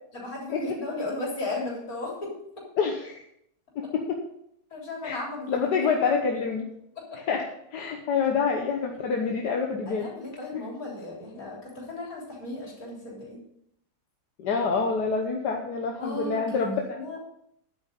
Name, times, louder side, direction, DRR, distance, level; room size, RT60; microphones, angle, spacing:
voice 1, 0.1-2.6 4.7-6.0 7.0-7.1 9.9-13.4 16.0-17.2, left 2 dB, 60° left, -3 dB, 4.1 m, -35 dB
voice 2, 2.8-3.2 3.7-4.2 5.0-5.2 5.5-6.7 7.1-7.4 7.7-10.1 10.5-10.6 14.4-17.0, left 5 dB, 85° left, 2 dB, 1.7 m, -27 dB
10.5 x 8.1 x 5.2 m, 0.74 s
omnidirectional pair, 1.8 m